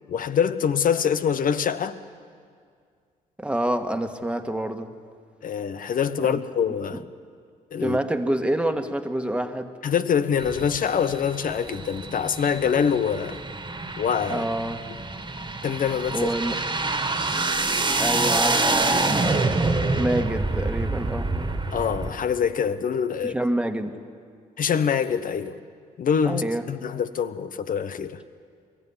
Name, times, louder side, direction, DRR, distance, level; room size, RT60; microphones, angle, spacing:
voice 1, 0.1-2.0 5.4-7.0 7.7-8.0 9.8-13.4 14.0-14.5 15.6-16.3 21.7-23.4 24.6-25.6 26.0-28.2, left 7 dB, 60° left, 1.0 m, -24 dB
voice 2, 3.4-4.9 6.2-6.4 7.8-9.7 14.3-14.8 16.1-16.6 18.0-19.0 20.0-21.5 23.2-24.0 26.3-26.7, right 1 dB, 5° right, 1.7 m, -27 dB
sound 1, 10.4-22.1, right 3 dB, 30° right, 1.9 m, -26 dB
23.0 x 15.0 x 9.8 m
supercardioid pair, 60°, 16 cm